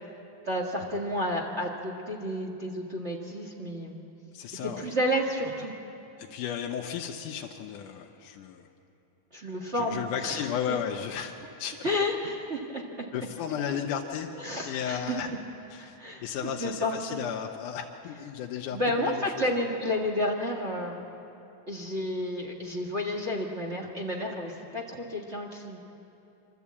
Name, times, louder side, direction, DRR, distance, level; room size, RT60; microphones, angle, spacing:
voice 1, 0.4-4.0 4.6-5.7 9.3-10.4 11.8-13.1 14.4-15.2 15.8-17.2 18.7-21.0 21.7-25.8, left 1 dB, 50° right, 0 dB, 0.8 m, -31 dB
voice 2, 4.3-4.9 6.2-8.7 9.7-11.9 13.1-14.3 14.7-15.3 15.7-19.5, left 8 dB, 70° left, 1 dB, 2.2 m, -34 dB
25.5 x 13.0 x 8.5 m, 2.8 s
omnidirectional pair, 4.1 m